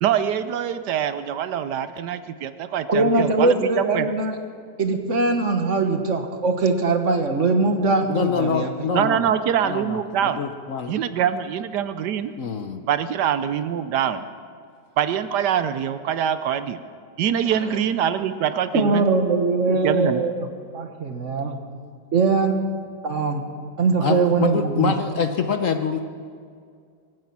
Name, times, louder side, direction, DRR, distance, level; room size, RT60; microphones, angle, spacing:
voice 1, 0.0-4.1 8.9-10.4 10.9-12.3 12.9-14.3 15.0-16.8 17.2-19.1 19.7-20.2, right 9 dB, 75° right, 12 dB, 1.2 m, -24 dB
voice 2, 2.9-4.4 4.8-8.7 18.7-20.5 20.7-21.5 22.1-22.6 23.0-23.4 23.8-24.9, right 3 dB, 45° right, 5 dB, 1.5 m, -21 dB
voice 3, 8.1-9.3 9.6-10.9 12.4-12.8 24.0-26.0, left 6 dB, 55° left, 7 dB, 1.0 m, -25 dB
24.5 x 9.6 x 6.0 m, 2.2 s
omnidirectional pair, 1.9 m